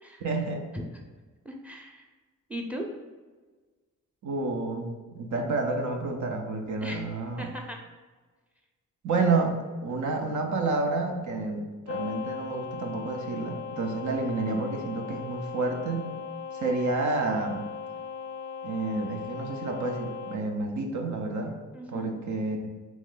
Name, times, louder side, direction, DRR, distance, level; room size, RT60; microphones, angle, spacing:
voice 1, 0.2-0.7 4.2-7.5 9.0-16.1 16.5-17.7 18.6-21.6 21.9-22.7, right 3 dB, 65° right, 3 dB, 0.7 m, -29 dB
voice 2, 0.7-1.0 1.4-2.1 2.5-2.9 6.8-7.0 7.4-7.8 21.7-22.1, equal, 5° right, 2 dB, 0.6 m, -38 dB
sound 1, 11.9-20.4, left 6 dB, 45° left, 0.4 m, -38 dB
3.1 x 3.1 x 3.7 m, 1.3 s
cardioid pair, 75°, 32 cm